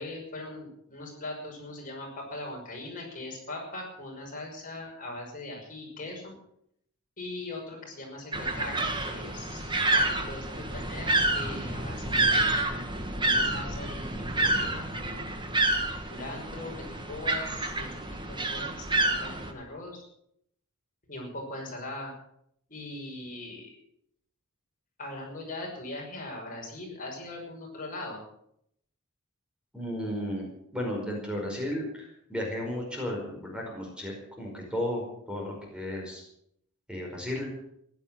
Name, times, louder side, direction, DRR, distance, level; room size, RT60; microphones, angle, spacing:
voice 1, 0.0-6.3 7.2-12.6 13.2-15.2 16.1-16.7 17.1-18.0 18.3-20.0 21.1-22.1 22.7-23.7 25.0-28.2, left 2 dB, 35° left, 0 dB, 5.7 m, -40 dB
sound 1, 8.3-19.5, right 2 dB, 20° right, 1.8 m, -28 dB
voice 2, 29.7-30.4 30.7-36.2 36.9-37.5, left 1 dB, 5° right, -1 dB, 5.1 m, -34 dB
16.0 x 11.5 x 7.5 m, 0.71 s
head